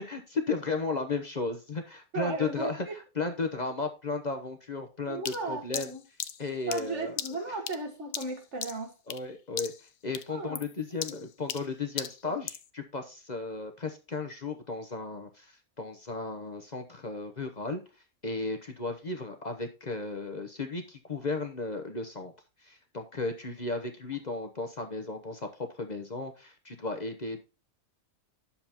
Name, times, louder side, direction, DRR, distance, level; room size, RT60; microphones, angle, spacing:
voice 1, 0.1-2.9 3.2-5.9 6.4-7.1 9.1-9.7 10.0-17.8 18.2-22.3 22.6-25.5 25.8-27.4, left 3 dB, 35° left, 0.9 m, -34 dB
voice 2, 2.1-2.9 5.1-6.0 6.7-8.9 10.3-10.6 11.2-11.3 12.2-12.4, right 3 dB, 55° right, 2.1 m, -36 dB
sound 1, 5.3-9.3 9.6-9.9 10.1-12.7, left 9 dB, 60° left, 0.7 m, -38 dB
10.5 x 7.1 x 2.9 m
omnidirectional pair, 1.5 m